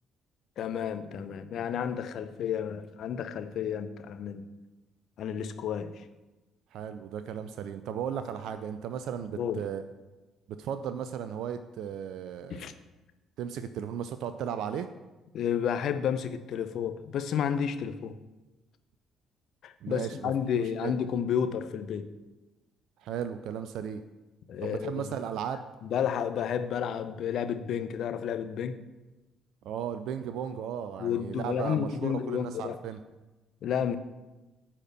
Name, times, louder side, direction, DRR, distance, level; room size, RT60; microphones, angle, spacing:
voice 1, 0.6-4.5 5.2-6.0 9.4-9.7 12.5-12.7 15.3-18.1 19.6-22.1 24.5-25.1 25.8-28.8 31.0-32.8 33.6-34.0, left 8 dB, 55° left, 10 dB, 0.6 m, -31 dB
voice 2, 6.7-9.8 10.5-12.7 13.4-14.9 19.8-20.3 20.8-21.0 23.0-24.0 24.6-25.6 29.6-33.0, right 8 dB, 60° right, 10 dB, 0.4 m, -35 dB
9.7 x 4.4 x 7.6 m, 1.1 s
figure-of-eight pair, 45°, 0 cm